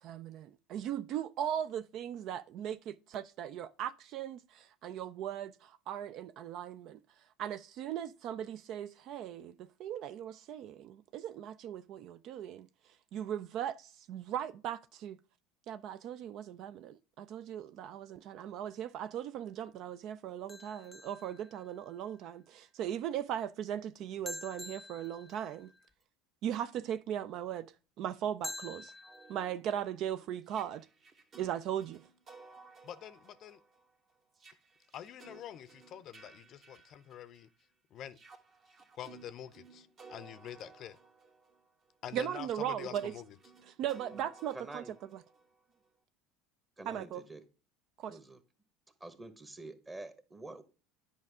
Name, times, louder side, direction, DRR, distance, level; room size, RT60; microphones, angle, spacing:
voice 1, 0.0-7.0 7.4-12.7 13.1-15.2 15.7-25.7 26.4-27.7 28.0-28.9 29.3-30.9 31.4-32.0 42.1-43.1 43.7-44.8 46.9-47.2 48.0-48.2, right 10 dB, 55° right, 0.3 m, -38 dB
sound 1, 20.5-22.0 24.3-25.9 28.4-29.5, left 1 dB, 5° left, 0.5 m, -47 dB
sound 2, 28.8-37.6 38.1-45.9, right 4 dB, 40° right, 1.4 m, -58 dB
voice 2, 32.8-33.6 34.9-37.5 37.9-38.2 39.0-41.0 42.0-43.2, left 10 dB, 50° left, 0.5 m, -46 dB
voice 3, 44.1-44.9 46.8-47.4 48.1-48.4 49.0-50.6, right 2 dB, 20° right, 1.3 m, -47 dB
9.7 x 5.0 x 3.5 m
hypercardioid pair, 75°, 0 cm